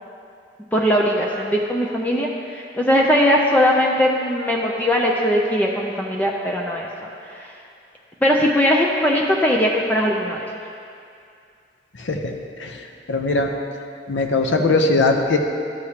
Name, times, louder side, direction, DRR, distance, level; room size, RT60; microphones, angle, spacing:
voice 1, 0.7-7.5 8.2-10.5, equal, 10° left, -2 dB, 0.5 m, -20 dB
voice 2, 11.9-13.5 14.1-15.4, left 3 dB, 85° left, 3 dB, 0.7 m, -21 dB
12.5 x 6.4 x 2.9 m, 2.5 s
head